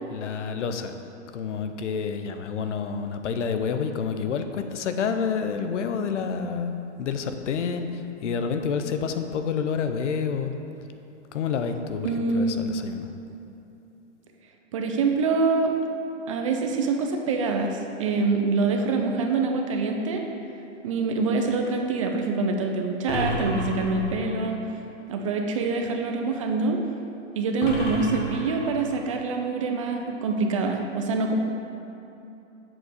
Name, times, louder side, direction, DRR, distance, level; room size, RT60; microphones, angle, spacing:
voice 1, 0.1-1.0 1.3-10.5 11.3-13.1, left 6 dB, 75° left, 7 dB, 0.8 m, -29 dB
voice 2, 12.0-12.6 14.7-15.7 16.3-20.2 20.8-24.6 25.1-26.8 27.4-31.3, right 4 dB, 30° right, 3 dB, 0.4 m, -25 dB
sound 1, 23.1-24.5 27.6-29.1, left 1 dB, 45° left, 1.6 m, -31 dB
7.6 x 4.1 x 6.5 m, 3.0 s
hypercardioid pair, 155°, 36 cm